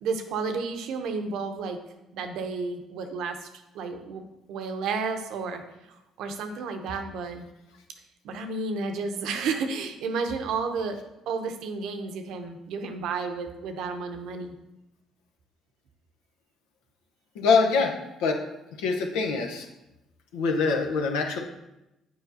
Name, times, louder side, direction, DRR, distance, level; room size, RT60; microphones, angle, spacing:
voice 1, 0.0-1.8 2.1-3.5 3.7-4.2 4.5-5.6 6.2-7.5 8.2-14.5, right 4 dB, 75° right, 6 dB, 0.7 m, -31 dB
voice 2, 17.3-18.4 18.8-19.7 20.3-21.4, left 4 dB, 85° left, 3 dB, 0.7 m, -24 dB
7.6 x 4.7 x 2.7 m, 0.92 s
supercardioid pair, 70°, 0 cm